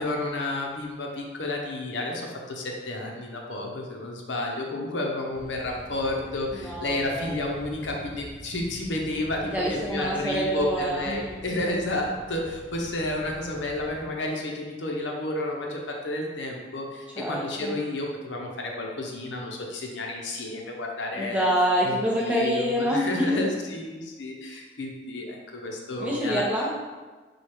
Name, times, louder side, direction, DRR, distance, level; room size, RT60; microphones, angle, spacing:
voice 1, 0.0-21.5 21.8-26.4, left 2 dB, 75° left, 0 dB, 0.7 m, -31 dB
sound 1, 5.3-14.1, right 1 dB, 80° right, 0.6 m, -46 dB
voice 2, 6.5-7.3 9.5-11.3 17.2-17.8 21.2-23.4 26.0-26.7, equal, 5° right, -5 dB, 0.7 m, -26 dB
4.7 x 2.3 x 4.3 m, 1.3 s
head